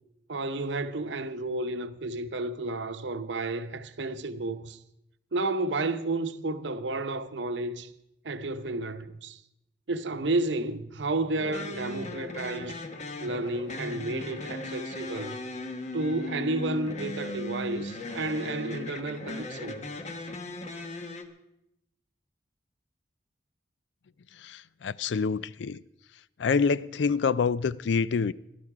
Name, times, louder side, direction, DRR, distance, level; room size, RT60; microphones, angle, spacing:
voice 1, 0.3-4.8 5.3-7.9 8.2-9.4 9.9-12.8 13.2-15.4 15.9-19.9, right 2 dB, 80° right, 0.8 m, -31 dB
sound 1, 11.4-21.2, left 1 dB, 40° left, 1.1 m, -37 dB
voice 2, 24.4-25.8 26.4-28.3, left 5 dB, 80° left, 0.4 m, -27 dB
17.0 x 12.0 x 4.9 m
head